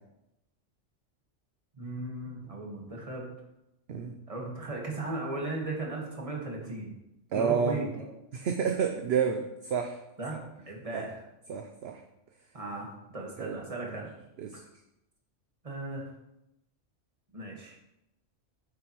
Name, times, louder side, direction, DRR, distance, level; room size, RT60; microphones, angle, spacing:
voice 1, 1.8-3.3 4.3-6.9 7.3-8.0 10.2-11.2 12.5-14.1 15.6-16.0 17.3-17.8, right 2 dB, 30° right, -1 dB, 1.6 m, -37 dB
voice 2, 7.3-7.8 8.3-10.0 10.9-11.0 11.5-12.0 13.4-13.6 13.9-14.0 14.4-14.6, right 6 dB, 60° right, 5 dB, 0.8 m, -29 dB
9.1 x 6.7 x 3.0 m, 0.88 s
omnidirectional pair, 1.3 m